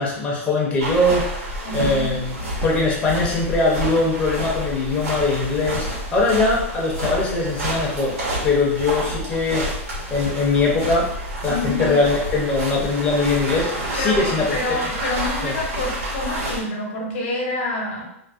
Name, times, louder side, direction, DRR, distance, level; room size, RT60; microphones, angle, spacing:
voice 1, 0.0-2.3 2.6-8.1 8.4-9.7 10.1-11.1 11.4-14.5 15.4-15.5, left 3 dB, 15° left, -4 dB, 0.5 m, -21 dB
sound 1, 0.8-16.6, right 1 dB, 85° right, 1.2 m, -29 dB
voice 2, 1.6-2.1 11.5-12.0 14.0-18.1, left 2 dB, 60° left, 0 dB, 0.7 m, -27 dB
2.4 x 2.1 x 2.4 m, 0.75 s
hypercardioid pair, 145°, 8 cm